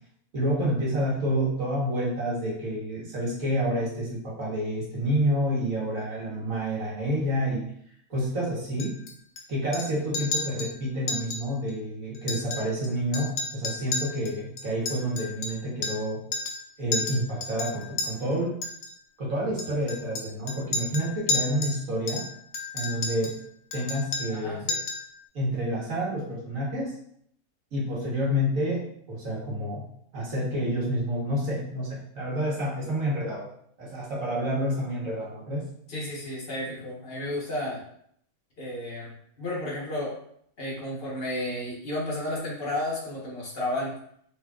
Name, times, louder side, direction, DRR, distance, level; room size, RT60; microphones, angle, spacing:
voice 1, 0.3-7.7 8.1-9.0 9.5-16.2 16.8-18.6 19.2-22.2 22.7-23.3 23.7-24.7 25.3-26.9 27.7-29.8 30.1-33.5 33.8-35.7, equal, 65° right, -5 dB, 1.6 m, -29 dB
Chink clink, 8.8-9.4 9.7-9.9 10.1-10.7 11.1-11.4 11.7-11.8 12.1-12.9 13.1-16.1 16.3-16.6 16.9-18.1 18.6-18.9 19.6-21.8 22.1-23.4 23.7-24.4 24.7-25.1, left 3 dB, 65° left, 0.6 m, -32 dB
voice 2, 24.3-24.8 35.9-37.8 38.6-40.1 40.6-43.9, left 1 dB, 45° left, -5 dB, 1.2 m, -32 dB
4.0 x 3.2 x 2.3 m, 0.68 s
omnidirectional pair, 1.5 m